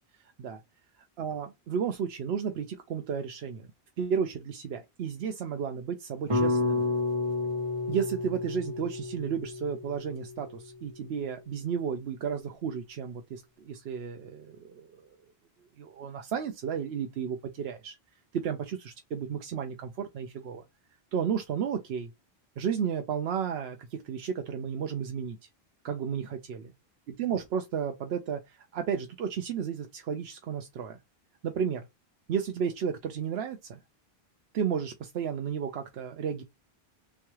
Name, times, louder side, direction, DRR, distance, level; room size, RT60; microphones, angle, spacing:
voice 1, 1.0-3.7 4.0-6.8 7.9-15.1 15.8-18.0 18.3-20.6 21.1-22.1 22.6-25.4 25.8-26.7 27.2-31.0 31.4-31.9 32.3-33.8 34.5-36.4, right 7 dB, 90° right, 0.9 m, -33 dB
sound 1, 6.3-10.6, left 3 dB, 35° right, 0.8 m, -30 dB
3.5 x 3.1 x 3.0 m
omnidirectional pair, 1.0 m